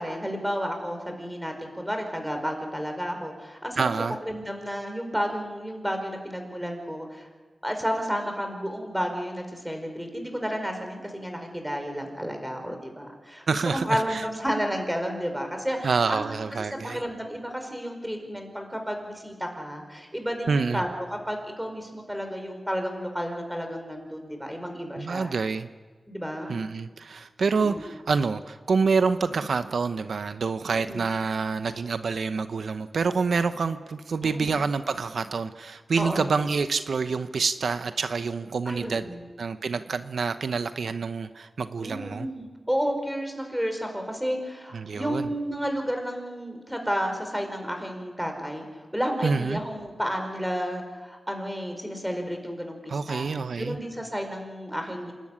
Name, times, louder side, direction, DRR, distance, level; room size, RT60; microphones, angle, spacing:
voice 1, 0.0-3.9 4.2-7.3 7.6-16.2 16.8-25.3 26.1-26.6 27.5-27.9 30.7-31.1 34.2-34.6 36.0-36.3 38.6-39.2 41.8-48.6 48.9-55.1, equal, 5° right, 4 dB, 5.0 m, -31 dB
voice 2, 3.8-4.2 13.5-14.2 15.8-17.0 20.5-20.8 24.9-25.7 26.5-39.0 39.4-42.3 44.7-45.3 49.2-49.6 52.9-53.8, right 4 dB, 80° right, 10 dB, 0.8 m, -27 dB
27.5 x 12.5 x 9.8 m, 1.4 s
wide cardioid pair, 75°, 0 cm